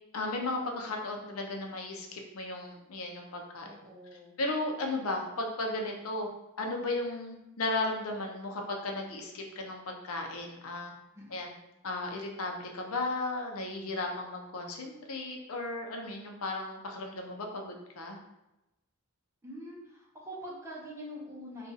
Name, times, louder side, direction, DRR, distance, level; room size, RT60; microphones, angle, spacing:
voice 1, 0.1-3.7 4.4-6.3 6.6-10.9 11.3-11.5 11.8-18.2, left 2 dB, 80° left, 2 dB, 0.6 m, -35 dB
voice 2, 3.6-4.4 11.1-11.7 19.4-21.7, equal, 15° right, -4 dB, 0.6 m, -45 dB
2.5 x 2.3 x 3.9 m, 0.92 s
head